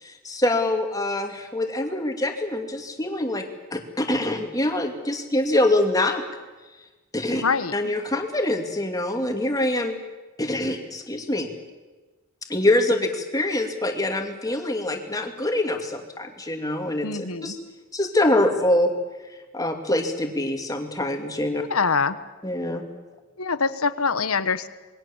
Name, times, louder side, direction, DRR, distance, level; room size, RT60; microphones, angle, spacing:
voice 1, 0.0-3.4 3.7-6.2 7.1-7.4 7.7-10.0 10.4-11.5 12.5-17.6 17.9-18.9 19.5-21.6 22.4-22.8, left 1 dB, 15° left, 4 dB, 2.5 m, -24 dB
voice 2, 7.4-7.7 17.0-17.5 21.7-22.2 23.4-24.7, left 5 dB, 80° left, 12 dB, 1.2 m, -24 dB
27.5 x 21.5 x 7.3 m, 1.2 s
head